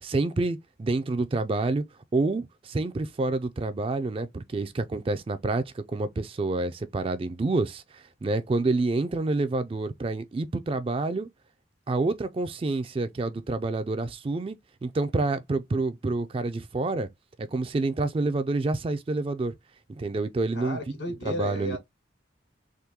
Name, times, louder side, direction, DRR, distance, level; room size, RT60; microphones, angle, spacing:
voice 1, 0.0-1.8 2.1-11.3 11.9-17.1 17.4-19.6 20.0-20.8 21.2-21.8, right 2 dB, 30° right, 0.3 m, -28 dB
voice 2, 20.5-21.8, equal, 75° left, 1.8 m, -33 dB
3.6 x 2.6 x 2.8 m
head